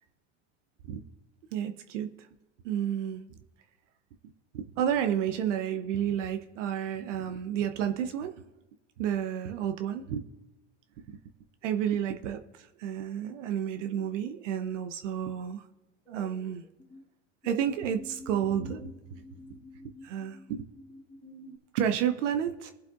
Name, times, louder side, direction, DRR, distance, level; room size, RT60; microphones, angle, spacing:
voice 1, 1.5-2.1 2.6-3.4 4.5-8.4 9.0-10.2 11.0-11.2 11.6-15.6 16.1-16.6 17.4-19.2 20.0-20.7 21.2-22.7, right 9 dB, 75° right, 8 dB, 0.9 m, -31 dB
sound 1, 13.7-14.3 16.1-17.0 17.4-21.6, left 1 dB, 15° left, 1.3 m, -49 dB
22.5 x 7.7 x 2.5 m, 1.0 s
hypercardioid pair, 85°, 37 cm